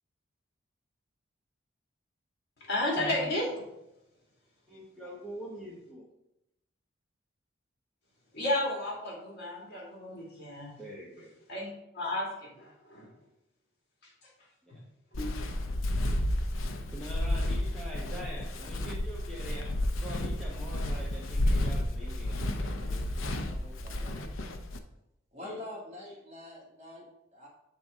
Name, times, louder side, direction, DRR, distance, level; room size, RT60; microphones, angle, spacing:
voice 1, 2.7-3.6 8.3-10.7 11.5-11.7 11.9-13.1 15.1-15.3, left 1 dB, 55° left, -3 dB, 2.1 m, -32 dB
voice 2, 4.7-6.0 10.8-11.3 16.9-19.7 20.0-23.0 25.4-25.6, equal, ahead, -7 dB, 0.9 m, -44 dB
Walk footsteps, 15.1-24.8, left 1 dB, 85° left, 0.6 m, -31 dB
voice 3, 17.9-18.4 23.0-24.2 25.3-27.5, left 1 dB, 35° right, -3 dB, 1.5 m, -46 dB
7.5 x 4.0 x 3.6 m, 0.85 s
head